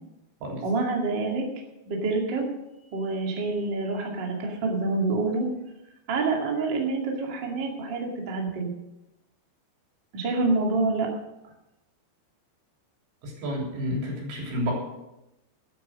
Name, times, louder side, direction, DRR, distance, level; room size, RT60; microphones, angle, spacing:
voice 1, 0.6-1.4 1.9-2.5 2.9-5.5 6.1-8.7 10.1-11.1, right 3 dB, 35° right, 0 dB, 2.1 m, -27 dB
voice 2, 13.2-14.7, equal, 85° right, -1 dB, 5.8 m, -30 dB
13.0 x 9.5 x 6.4 m, 0.93 s
omnidirectional pair, 5.1 m